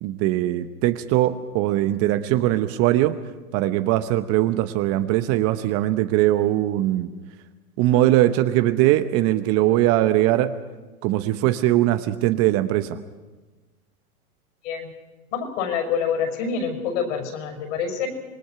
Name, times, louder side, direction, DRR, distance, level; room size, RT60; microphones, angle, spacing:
voice 1, 0.0-3.2 3.5-7.1 7.8-10.5 11.0-13.0, right 14 dB, 30° right, 10 dB, 0.9 m, -21 dB
voice 2, 15.3-18.1, left 6 dB, 55° left, 5 dB, 6.1 m, -26 dB
26.0 x 20.0 x 5.8 m, 1.2 s
hypercardioid pair, 125°, 44 cm